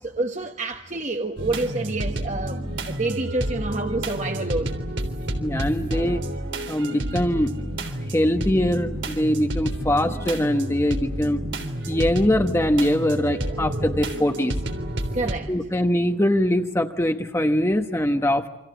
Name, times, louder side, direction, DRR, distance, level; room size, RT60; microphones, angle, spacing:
voice 1, 0.0-4.8 15.1-15.5, right 2 dB, 40° right, 1.4 m, -28 dB
sound 1, 1.4-15.4, right 1 dB, 85° right, 3.5 m, -30 dB
voice 2, 5.4-6.2 6.7-7.5 8.1-11.4 11.9-14.6 15.5-18.5, left 1 dB, 15° left, 1.1 m, -22 dB
28.5 x 26.0 x 8.1 m
head